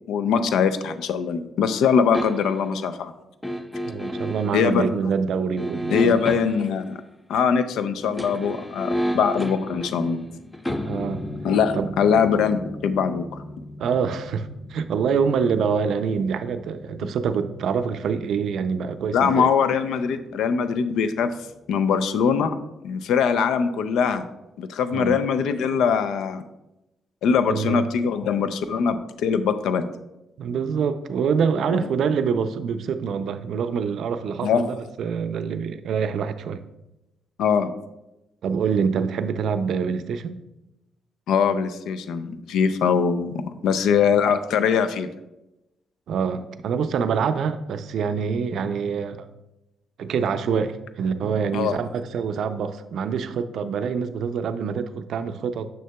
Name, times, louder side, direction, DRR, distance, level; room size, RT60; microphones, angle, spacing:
voice 1, 0.1-3.1 4.5-4.9 5.9-7.0 7.3-10.2 11.4-13.3 19.1-21.3 21.7-22.5 22.8-24.2 24.6-26.4 27.2-29.9 31.7-31.8 34.4-34.7 37.4-37.7 41.3-45.1 51.5-51.8, left 6 dB, 80° left, 10 dB, 0.4 m, -22 dB
sound 1, 2.1-2.7 3.4-4.6 5.6-6.8 8.0-19.0 19.3-19.4, equal, 10° left, 0.5 m, -33 dB
voice 2, 3.8-6.4 10.8-11.3 11.7-11.9 13.8-19.5 24.9-25.2 27.5-27.8 30.4-36.6 38.4-40.4 46.1-49.3 50.0-55.7, right 6 dB, 70° right, 10 dB, 0.4 m, -25 dB
6.6 x 6.4 x 2.2 m, 0.93 s
cardioid pair, 90°, 0 cm